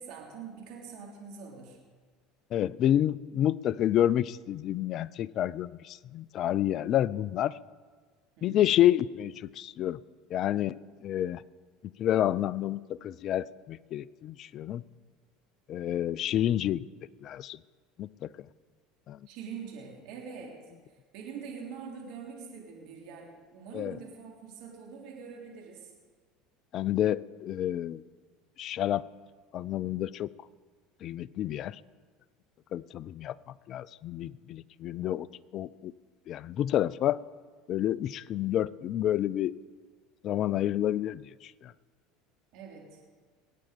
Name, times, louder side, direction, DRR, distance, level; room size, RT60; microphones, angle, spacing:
voice 1, 0.0-1.8 8.4-8.7 19.3-20.6 21.1-25.9 42.5-43.0, right 6 dB, 65° right, -1 dB, 3.2 m, -44 dB
voice 2, 2.5-7.5 8.4-10.0 10.3-10.7 11.0-11.4 12.0-14.8 15.7-16.8 17.2-17.6 18.0-18.3 19.1-19.2 23.7-24.0 26.7-28.0 28.6-29.0 29.5-30.3 31.0-31.8 32.7-33.4 33.7-35.3 35.5-35.9 36.3-37.2 37.7-39.5 40.2-41.7, left 12 dB, 50° left, 21 dB, 0.4 m, -29 dB
21.5 x 9.1 x 5.2 m, 1.5 s
hypercardioid pair, 85°, 0 cm